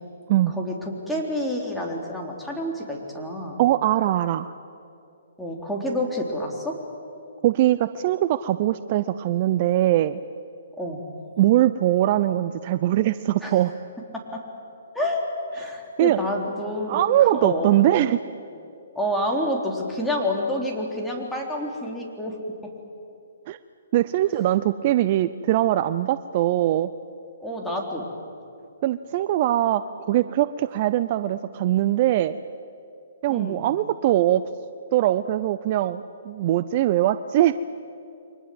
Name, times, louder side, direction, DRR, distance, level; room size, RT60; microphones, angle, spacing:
voice 1, 0.5-3.6 5.4-6.7 10.8-11.0 13.4-13.6 14.1-14.4 14.9-15.2 15.5-17.7 19.0-22.4 27.4-28.1 33.3-33.7, left 1 dB, 5° left, -1 dB, 3.8 m, -28 dB
voice 2, 3.6-4.5 7.4-10.2 11.4-13.7 16.0-16.2 16.9-18.2 23.5-23.6 23.9-26.9 28.8-29.8 30.1-32.4 33.2-34.4 34.9-37.5, right 13 dB, 40° right, 13 dB, 0.6 m, -21 dB
29.5 x 24.0 x 7.9 m, 2.6 s
hypercardioid pair, 145°, 0 cm